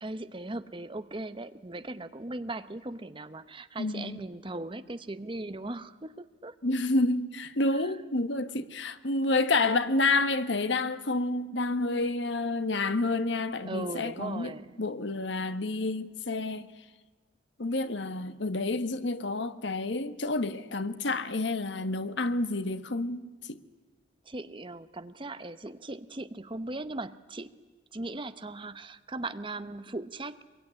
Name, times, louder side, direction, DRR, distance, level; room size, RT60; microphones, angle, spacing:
voice 1, 0.0-6.5 7.7-7.9 13.6-14.8 24.2-27.5 27.9-30.4, right 2 dB, 25° right, 0.9 m, -38 dB
voice 2, 3.8-4.2 6.6-14.5 14.8-16.7 17.6-23.6, left 2 dB, 65° left, 1.3 m, -29 dB
25.0 x 22.5 x 9.9 m
head